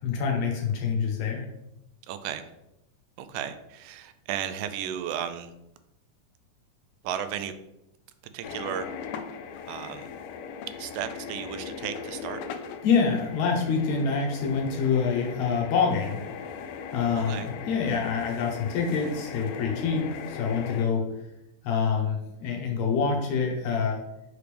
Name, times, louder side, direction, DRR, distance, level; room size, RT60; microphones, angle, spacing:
voice 1, 0.0-1.5 12.8-16.2 16.9-21.1 21.6-24.0, left 5 dB, 70° left, 0 dB, 2.2 m, -26 dB
voice 2, 2.1-2.5 3.2-5.5 7.0-7.5 8.3-8.9 9.7-10.1 10.8-12.4 17.2-17.5, right 9 dB, 90° right, 10 dB, 2.1 m, -34 dB
sound 1, 8.4-20.9, left 6 dB, 85° left, 2.1 m, -39 dB
6.0 x 5.0 x 3.3 m, 0.86 s
omnidirectional pair, 3.6 m